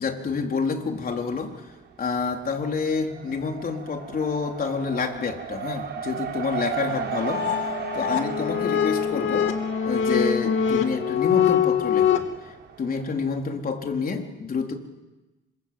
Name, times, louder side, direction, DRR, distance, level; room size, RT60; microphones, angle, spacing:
voice 1, 0.0-1.5 2.0-9.5 9.9-12.2 12.8-14.7, left 5 dB, 45° left, 3 dB, 4.2 m, -28 dB
Race car auto racing, 0.9-1.7 2.0-13.4, right 7 dB, 60° right, 5.6 m, -36 dB
sound 1, 6.9-12.2, left 8 dB, 80° left, 2.8 m, -24 dB
27.5 x 26.0 x 7.8 m, 1.1 s
cardioid pair, 90°, 20 cm